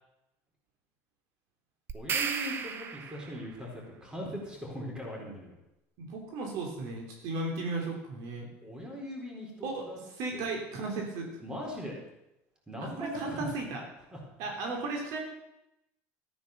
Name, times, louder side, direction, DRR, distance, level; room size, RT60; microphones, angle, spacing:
voice 1, 1.9-5.5 8.6-10.0 10.3-10.5 11.4-12.0 12.7-13.5 14.1-14.2 14.6-14.7, equal, 10° right, -1 dB, 4.4 m, -40 dB
sound 1, 1.9-3.5, right 6 dB, 35° right, 1.2 m, -34 dB
voice 2, 6.0-8.5 9.6-9.8 10.2-11.4 13.0-13.8 14.4-15.2, right 3 dB, 60° right, 2 dB, 3.2 m, -35 dB
13.5 x 9.6 x 6.7 m, 0.90 s
cardioid pair, 130°, 7 cm